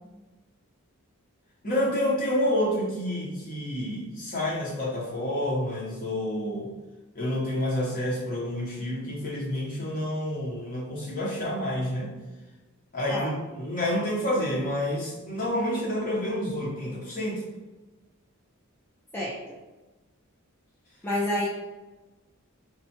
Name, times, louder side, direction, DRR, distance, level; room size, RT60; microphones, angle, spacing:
voice 1, 1.6-6.7 7.1-12.1 12.9-17.4, left 1 dB, 40° left, -4 dB, 0.9 m, -29 dB
voice 2, 21.0-21.5, left 1 dB, 10° left, -7 dB, 0.4 m, -28 dB
4.2 x 2.1 x 2.9 m, 1.1 s
head